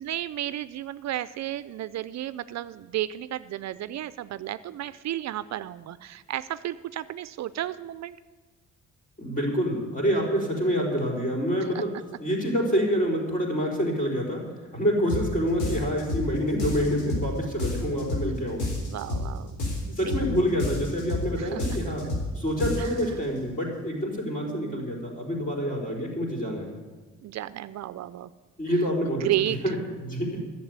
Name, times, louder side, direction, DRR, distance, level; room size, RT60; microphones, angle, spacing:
voice 1, 0.0-8.2 11.7-11.8 15.7-15.8 18.8-20.2 21.4-21.6 22.8-22.9 24.4-24.9 27.2-28.3 29.2-29.6, right 13 dB, 65° right, 14 dB, 0.5 m, -33 dB
voice 2, 9.2-11.9 12.2-14.4 14.7-18.7 19.9-22.1 22.3-26.7 28.6-29.3 29.6-29.7 30.0-30.4, equal, 25° left, -1 dB, 4.5 m, -27 dB
sound 1, 15.1-15.3 15.6-16.3 16.6-17.3 17.6-18.3 18.6-19.3 19.6-20.3 20.6-21.3 21.6-22.3 22.6-23.0, left 2 dB, 75° left, 3.7 m, -29 dB
12.0 x 7.4 x 9.5 m, 1.3 s
cardioid pair, 90°, 30 cm